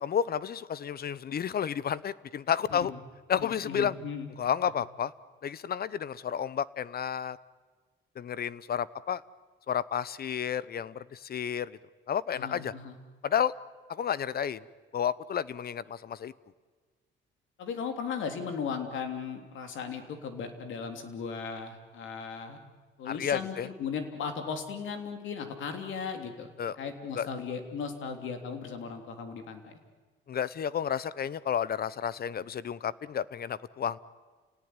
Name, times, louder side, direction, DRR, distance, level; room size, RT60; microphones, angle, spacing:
voice 1, 0.0-2.9 3.3-3.9 4.4-5.1 5.4-7.4 8.2-9.2 9.7-11.8 12.1-12.7 13.2-13.5 13.9-14.6 14.9-16.3 23.1-23.7 26.6-26.8 27.2-27.3 30.3-34.0, left 8 dB, 50° left, 19 dB, 0.8 m, -31 dB
voice 2, 3.4-4.3 12.3-13.0 17.6-22.6 23.0-29.8, left 6 dB, 75° left, 6 dB, 3.3 m, -37 dB
29.5 x 18.0 x 9.8 m, 1.4 s
cardioid pair, 90°, 20 cm